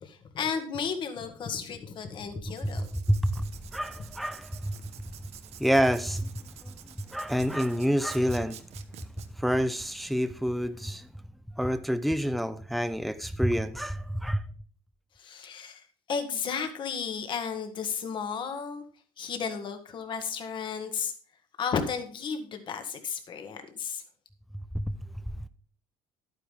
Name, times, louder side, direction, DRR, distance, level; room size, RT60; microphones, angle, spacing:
voice 1, 0.0-2.9 15.2-18.8 19.2-21.1 21.6-24.0, left 6 dB, 45° left, 1.9 m, -33 dB
Writing, 2.5-9.3, right 11 dB, 65° right, 1.2 m, -50 dB
voice 2, 2.6-4.8 5.6-6.3 6.6-6.7 7.1-8.6 9.4-11.1 11.6-14.4 24.7-24.9, equal, ahead, 0.6 m, -28 dB
11.5 x 9.2 x 3.6 m
cardioid pair, 115°, 12 cm